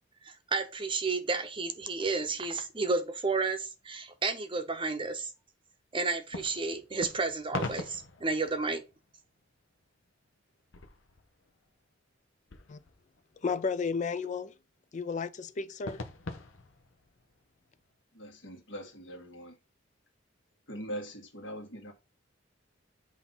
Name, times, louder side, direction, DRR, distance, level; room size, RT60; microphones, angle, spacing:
voice 1, 0.2-5.3 5.9-8.8, right 4 dB, 25° right, 0.7 m, -32 dB
sound 1, 1.8-3.2 6.3-9.5 9.8-9.9 10.3-10.4 10.6-11.7 12.5-13.5 15.8-17.8, left 3 dB, 85° left, 0.9 m, -43 dB
voice 2, 13.4-14.6 14.9-16.0, left 5 dB, 40° left, 0.4 m, -33 dB
voice 3, 18.1-19.6 20.7-21.9, equal, 65° left, 2.0 m, -42 dB
8.2 x 2.9 x 5.4 m
head